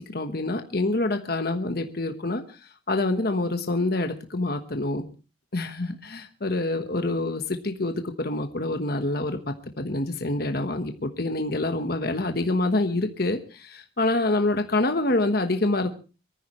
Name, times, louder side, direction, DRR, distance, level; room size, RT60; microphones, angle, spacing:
voice 1, 0.0-2.6 2.9-5.1 5.5-15.9, left 2 dB, 50° left, 6 dB, 1.3 m, -26 dB
23.5 x 14.5 x 3.2 m, 0.33 s
head